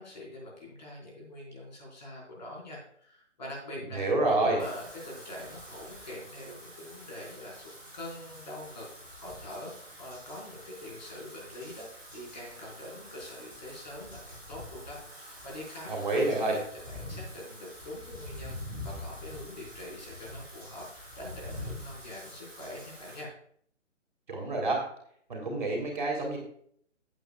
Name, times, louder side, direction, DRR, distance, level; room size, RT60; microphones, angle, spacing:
voice 1, 0.0-4.0 4.4-8.9 9.1-16.6 16.9-23.3, left 1 dB, 35° left, -4 dB, 4.9 m, -44 dB
voice 2, 3.9-4.6 15.9-16.6 24.3-24.8 25.3-26.4, right 2 dB, 40° right, 0 dB, 3.3 m, -28 dB
Wind / Rain, 4.6-23.2, left 1 dB, 5° left, 3.0 m, -46 dB
14.5 x 8.8 x 2.4 m, 0.63 s
hypercardioid pair, 180°, 37 cm